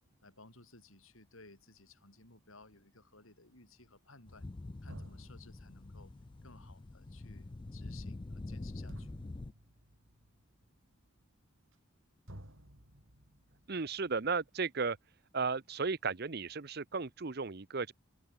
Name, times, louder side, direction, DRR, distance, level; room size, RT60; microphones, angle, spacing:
voice 1, 0.2-4.5 4.8-6.1 6.4-9.2, left 3 dB, 70° left, 7.0 m, -58 dB
sound 1, 4.3-9.5, left 2 dB, 20° left, 0.4 m, -45 dB
sound 2, 4.3-4.4 4.9-12.0 12.3-14.3, equal, 65° right, 5.8 m, -56 dB
voice 2, 13.7-15.0 15.3-17.9, right 4 dB, 45° right, 0.8 m, -35 dB
head